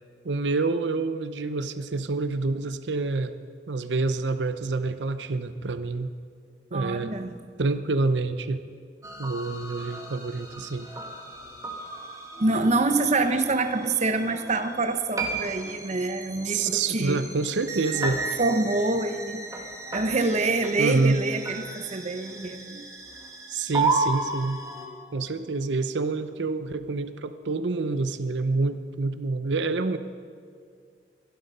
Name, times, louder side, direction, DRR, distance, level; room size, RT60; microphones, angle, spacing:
voice 1, 0.2-3.3 3.7-6.1 6.7-7.1 7.6-8.6 9.2-10.9 16.5-18.2 20.8-21.2 23.5-24.6 25.1-30.0, right 3 dB, 90° right, 11 dB, 0.7 m, -27 dB
voice 2, 6.7-7.4 12.4-17.2 18.4-19.4 19.9-22.9, right 3 dB, 40° right, 8 dB, 0.8 m, -26 dB
sound 1, 9.0-24.9, right 3 dB, 20° right, 1.9 m, -34 dB
23.0 x 11.5 x 5.5 m, 2.2 s
head